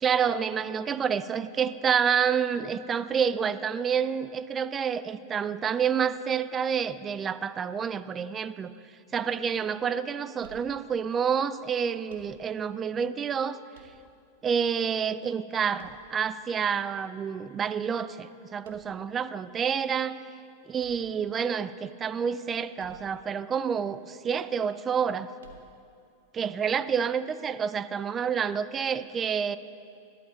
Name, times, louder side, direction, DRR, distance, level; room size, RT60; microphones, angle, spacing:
voice 1, 0.0-8.7 9.1-13.6 14.4-20.2 20.7-25.3 26.3-29.6, right 7 dB, 25° right, 14 dB, 0.5 m, -28 dB
sound 1, 10.4-11.2 12.0-12.8 13.7-14.4 15.7-16.6 18.6-19.2 20.8-21.6 22.8-23.3 23.6-23.7 25.4-26.0, right 4 dB, 80° right, 1.6 m, -55 dB
17.0 x 12.0 x 4.2 m, 2.5 s
hypercardioid pair, 105°, 0 cm